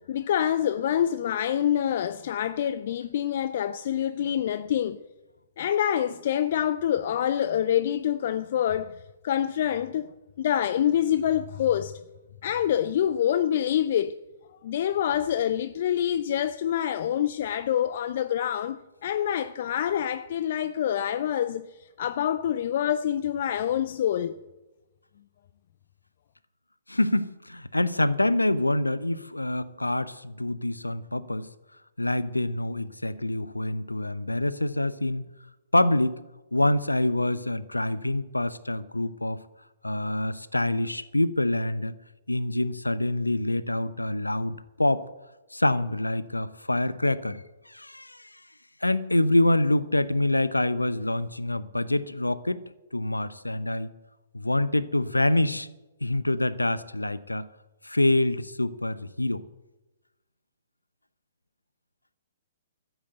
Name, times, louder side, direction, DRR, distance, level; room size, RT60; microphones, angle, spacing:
voice 1, 0.1-5.0 5.6-8.9 9.2-10.1 10.4-11.9 12.4-14.1 14.6-18.8 19.0-21.7 22.0-24.3, left 10 dB, 50° left, 0.4 m, -26 dB
voice 2, 26.9-31.5 32.0-35.2 35.7-36.2 36.5-39.4 39.8-41.9 42.3-45.1 45.5-48.3 48.8-52.6 52.9-53.9 54.3-55.7 56.0-57.5 57.8-59.4, left 1 dB, 85° left, 0.7 m, -26 dB
13.5 x 8.1 x 7.8 m
figure-of-eight pair, 120°, 0 cm